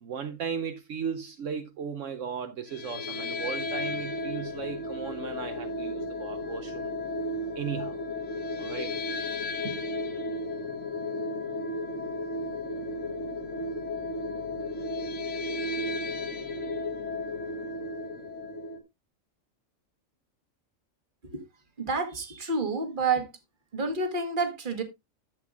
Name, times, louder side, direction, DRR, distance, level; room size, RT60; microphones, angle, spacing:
voice 1, 0.0-6.9 7.6-8.0 8.6-9.0 9.6-9.8, right 7 dB, 70° right, 1.1 m, -36 dB
sound 1, 2.7-18.8, left 2 dB, 65° left, 1.6 m, -34 dB
voice 2, 21.8-23.3 23.7-24.8, right 4 dB, 40° right, 1.4 m, -29 dB
12.0 x 7.7 x 2.4 m
omnidirectional pair, 1.4 m